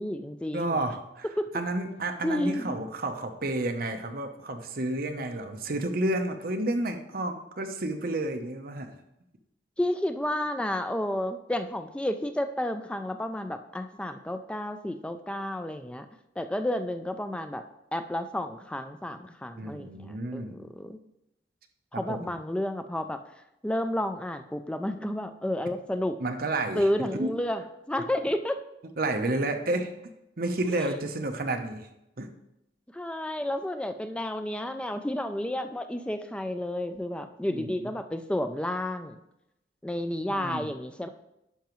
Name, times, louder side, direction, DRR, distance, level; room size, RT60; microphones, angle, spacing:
voice 1, 0.0-0.8 1.4-1.5 2.2-2.8 9.8-16.1 16.4-17.6 17.9-21.0 21.9-23.2 23.6-26.2 26.7-28.6 30.8-31.0 32.9-39.2 39.8-41.1, left 1 dB, 5° left, 8 dB, 0.3 m, -31 dB
voice 2, 0.5-1.3 1.5-8.9 19.6-20.6 21.9-22.3 26.2-27.4 29.0-29.9 30.4-31.9 32.2-32.3 37.5-37.9 40.3-40.7, right 2 dB, 55° right, 5 dB, 0.8 m, -31 dB
10.0 x 5.7 x 3.1 m, 0.86 s
head